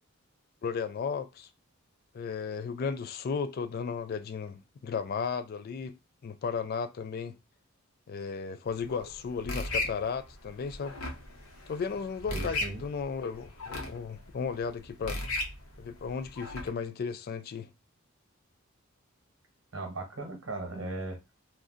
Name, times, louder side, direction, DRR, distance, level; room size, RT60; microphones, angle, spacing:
voice 1, 0.6-1.5 2.1-7.3 8.1-11.0 11.7-15.2 15.8-17.7, left 5 dB, 45° left, 0.3 m, -35 dB
sound 1, 8.7-16.7, left 2 dB, 90° left, 0.8 m, -38 dB
voice 2, 12.3-12.8 19.7-21.2, right 2 dB, 65° right, 1.0 m, -37 dB
2.5 x 2.2 x 3.6 m
head